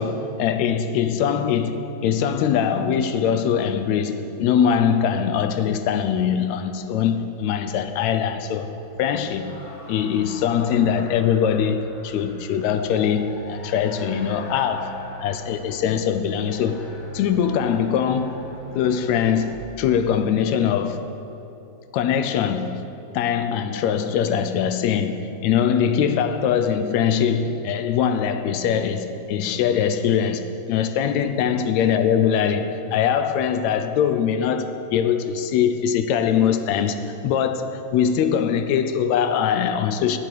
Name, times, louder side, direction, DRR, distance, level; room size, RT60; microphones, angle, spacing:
voice 1, 0.0-8.7 9.0-9.5 9.9-16.8 17.1-18.4 18.8-21.1 21.9-22.8 23.1-40.2, left 8 dB, 80° left, 1.8 m, -22 dB
sound 1, 6.5-19.6, equal, 50° left, 1.8 m, -41 dB
9.4 x 7.7 x 8.4 m
omnidirectional pair, 3.4 m